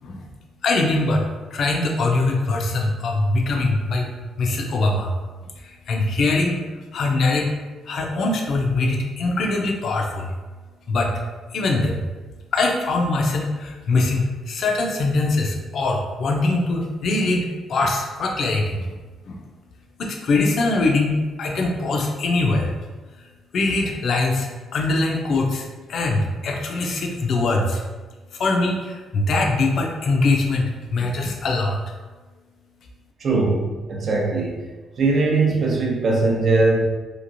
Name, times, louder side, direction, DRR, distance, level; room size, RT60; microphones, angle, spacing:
voice 1, 0.6-1.3 1.5-4.1 4.4-5.1 5.6-6.6 6.9-7.5 7.9-10.3 10.9-11.1 11.5-12.0 12.5-18.9 19.3-19.4 20.0-22.7 23.5-27.8 28.4-31.8, left 2 dB, 65° left, 1 dB, 0.5 m, -22 dB
voice 2, 33.2-34.6 35.0-36.8, right 3 dB, 50° right, -1 dB, 0.6 m, -20 dB
3.0 x 2.4 x 2.6 m, 1.3 s
cardioid pair, 90°, 0 cm